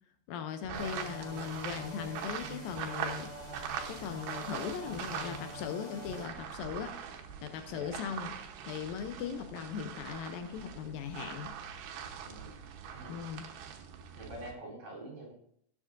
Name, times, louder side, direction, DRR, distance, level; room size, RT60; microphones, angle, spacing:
voice 1, 0.3-3.3 3.9-7.0 7.4-8.4 8.6-11.5 13.1-13.5, left 7 dB, 80° left, 7 dB, 2.3 m, -39 dB
sound 1, 0.6-5.7 5.9-14.5, right 8 dB, 85° right, 3.0 m, -42 dB
sound 2, 0.7-6.3, equal, 10° left, 3.1 m, -45 dB
voice 2, 7.7-8.0 12.2-12.6 12.9-13.7 14.1-15.3, right 1 dB, 55° right, -3 dB, 4.9 m, -47 dB
18.0 x 7.5 x 2.6 m, 0.68 s
omnidirectional pair, 4.3 m